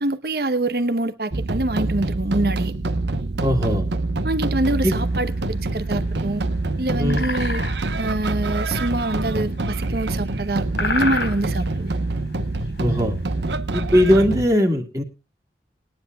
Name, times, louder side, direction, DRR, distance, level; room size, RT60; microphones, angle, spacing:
voice 1, 0.0-2.7 4.2-6.4 6.8-7.6 8.0-12.0, right 1 dB, 55° right, 0.9 m, -25 dB
sound 1, 1.3-14.5, right 2 dB, 80° right, 1.0 m, -25 dB
voice 2, 3.4-3.9 4.8-4.9 7.0-7.2 12.8-13.1 13.7-15.0, equal, 20° right, 2.0 m, -19 dB
sound 2, 4.6-13.5, left 3 dB, 80° left, 4.1 m, -31 dB
21.0 x 10.0 x 2.3 m
head